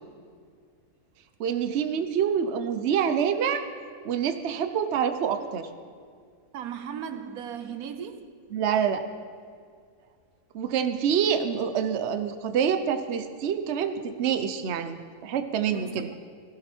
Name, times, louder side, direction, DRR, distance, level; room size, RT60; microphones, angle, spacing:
voice 1, 1.4-3.6 4.0-5.7 8.5-9.1 10.5-15.0 15.2-16.1, right 8 dB, 55° right, 1.0 m, -26 dB
voice 2, 6.5-8.4 10.0-10.2 15.7-16.2, right 8 dB, 85° right, 1.3 m, -37 dB
16.0 x 16.0 x 4.5 m
omnidirectional pair, 1.5 m